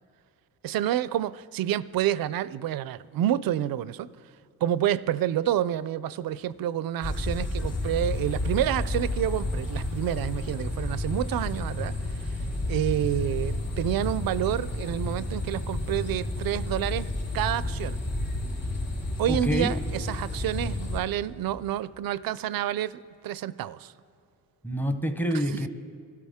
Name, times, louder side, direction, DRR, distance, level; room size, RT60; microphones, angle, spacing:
voice 1, 0.6-4.1 4.6-12.3 12.7-18.0 19.2-23.9 25.3-25.7, right 11 dB, 75° right, 0.5 m, -29 dB
sound 1, 7.0-21.0, left 2 dB, 65° left, 4.3 m, -31 dB
voice 2, 19.3-19.7 24.6-25.7, equal, 5° left, 0.8 m, -27 dB
23.5 x 12.5 x 3.6 m
cardioid pair, 90°, 35 cm